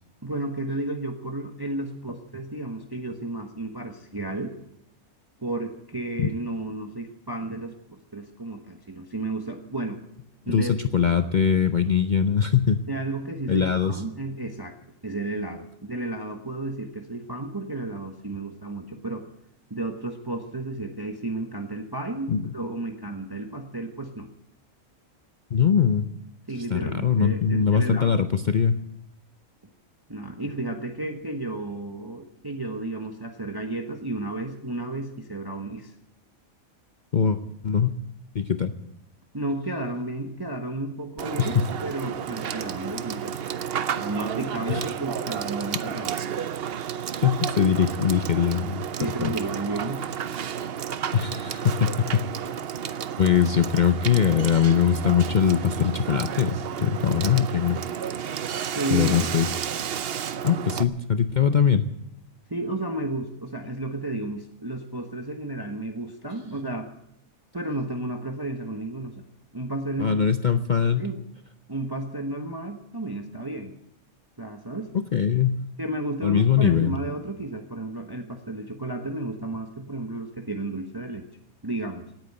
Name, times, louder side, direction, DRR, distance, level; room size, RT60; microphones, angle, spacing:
voice 1, 0.2-4.5 5.4-10.0 10.5-10.8 12.9-14.8 15.0-19.3 19.7-24.3 26.5-28.2 30.1-35.9 39.3-41.6 41.8-43.4 43.9-46.2 49.0-50.0 58.7-59.3 62.5-66.9 67.5-69.2 69.5-70.2 70.5-70.6 71.0-71.2 71.7-73.7 74.4-74.9 75.8-81.2 81.6-82.0, right 2 dB, 15° right, 4 dB, 1.2 m, -32 dB
voice 2, 10.5-12.8 13.5-14.0 22.3-22.4 25.5-26.0 26.7-28.7 37.1-37.4 37.6-38.0 38.3-38.7 41.4-41.7 44.7-44.8 47.1-48.8 49.2-49.3 51.1-52.3 53.2-57.8 58.9-59.6 60.4-61.9 70.0-71.1 74.9-75.6 76.2-76.9, left 7 dB, 45° left, 9 dB, 0.6 m, -22 dB
Water / Water tap faucet / Sink (filling or washing), 41.2-60.8, right 8 dB, 50° right, 0.8 m, -32 dB
18.0 x 9.1 x 8.7 m, 0.76 s
omnidirectional pair, 1.5 m